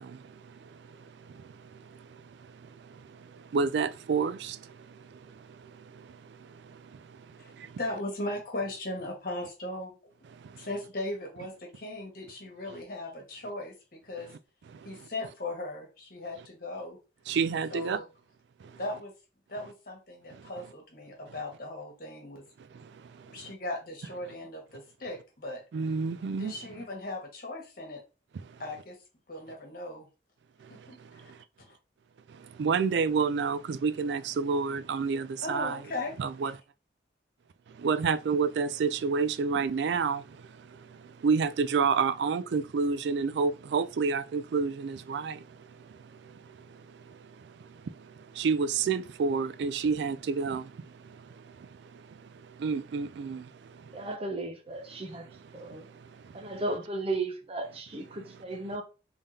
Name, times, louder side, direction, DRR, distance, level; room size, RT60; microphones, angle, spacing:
voice 1, 3.5-4.4 17.3-18.0 25.7-26.5 32.6-35.8 36.2-36.5 37.8-40.2 41.2-45.3 48.4-50.6 52.6-53.4, right 5 dB, 75° right, 0.3 m, -28 dB
voice 2, 7.8-9.9 10.6-14.3 14.8-17.0 17.7-18.0 18.8-19.1 19.5-22.4 23.3-25.6 26.4-28.0 28.6-29.0 29.3-30.1 30.9-31.3 31.7-31.8 35.4-36.1, left 2 dB, 55° left, 1.4 m, -38 dB
voice 3, 53.9-55.3 55.5-55.9 56.3-58.8, right 2 dB, 35° right, 0.6 m, -35 dB
3.7 x 3.4 x 2.7 m
head